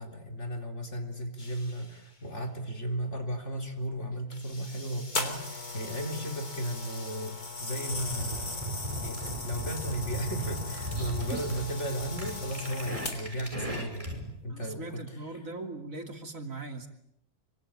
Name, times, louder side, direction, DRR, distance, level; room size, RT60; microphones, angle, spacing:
voice 1, 0.0-7.3 7.6-8.6 9.0-9.2 9.4-15.1, equal, 50° left, 4 dB, 4.2 m, -35 dB
sound 1, 1.4-2.5 4.3-8.3 9.0-9.1 11.2-12.7, left 2 dB, 30° left, 2.7 m, -49 dB
sound 2, 5.2-13.5 14.2-14.4, left 3 dB, 85° left, 4.1 m, -38 dB
sound 3, 7.9-14.3, right 1 dB, 20° right, 6.1 m, -37 dB
voice 2, 14.5-16.9, right 3 dB, 60° right, 5 dB, 3.3 m, -39 dB
26.0 x 24.5 x 8.9 m, 0.76 s
omnidirectional pair, 1.6 m